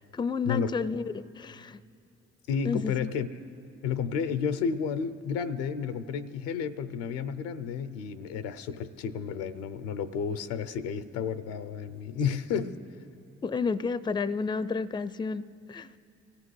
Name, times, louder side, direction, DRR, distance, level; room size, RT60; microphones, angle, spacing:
voice 1, 0.1-1.8 2.6-3.1 13.4-15.9, left 5 dB, 15° left, 0.4 m, -31 dB
voice 2, 2.5-3.3 3.8-12.8, left 6 dB, 90° left, 0.5 m, -31 dB
24.0 x 15.5 x 3.2 m
hypercardioid pair, 40°, 31 cm